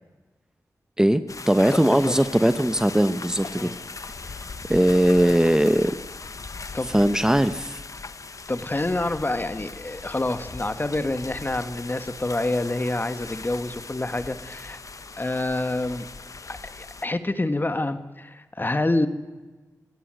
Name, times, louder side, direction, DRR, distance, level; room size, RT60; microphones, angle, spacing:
voice 1, 1.0-3.7 4.7-5.9 6.9-7.8, right 1 dB, 10° right, 11 dB, 1.0 m, -20 dB
sound 1, 1.3-17.0, left 4 dB, 60° left, 1.3 m, -39 dB
voice 2, 8.5-14.8 15.2-16.0 16.5-19.1, left 2 dB, 30° left, 10 dB, 1.9 m, -27 dB
27.0 x 16.5 x 7.9 m, 1.3 s
cardioid pair, 45°, 6 cm